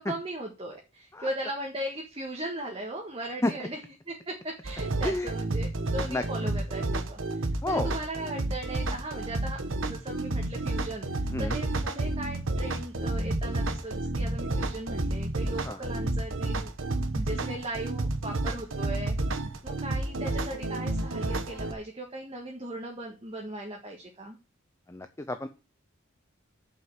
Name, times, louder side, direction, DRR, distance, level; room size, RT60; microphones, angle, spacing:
voice 1, 0.0-19.2 19.6-24.4, right 1 dB, 30° right, 0 dB, 1.7 m, -38 dB
sound 1, 4.6-21.7, right 2 dB, 75° right, 1.1 m, -30 dB
voice 2, 24.9-25.5, left 1 dB, 15° left, 8 dB, 0.6 m, -30 dB
7.7 x 5.6 x 7.6 m, 0.31 s
head